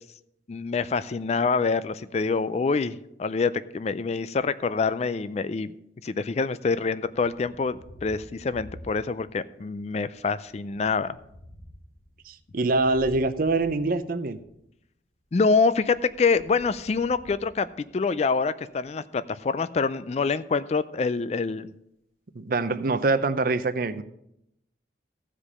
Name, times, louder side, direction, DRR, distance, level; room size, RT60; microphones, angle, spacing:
voice 1, 0.5-5.7 6.0-11.1 15.3-17.7 17.9-21.7, left 4 dB, 35° left, 15 dB, 0.3 m, -26 dB
Thunder, 7.2-9.4 9.8-14.6 15.6-18.3, equal, 60° left, 1.2 m, -50 dB
voice 2, 12.3-14.4 22.4-24.0, right 3 dB, 50° right, 12 dB, 0.5 m, -24 dB
15.0 x 5.0 x 5.5 m, 0.78 s
head